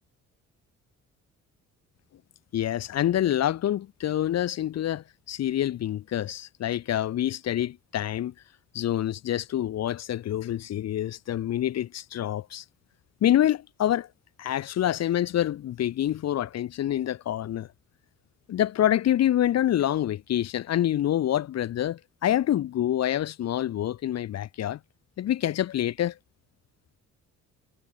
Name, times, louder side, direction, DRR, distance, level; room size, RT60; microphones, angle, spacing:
voice 1, 2.5-8.3 8.7-12.6 13.2-14.1 14.4-17.7 18.5-24.8 25.2-26.2, left 12 dB, 60° left, 0.8 m, -26 dB
cardioid pair, 90°, 30 cm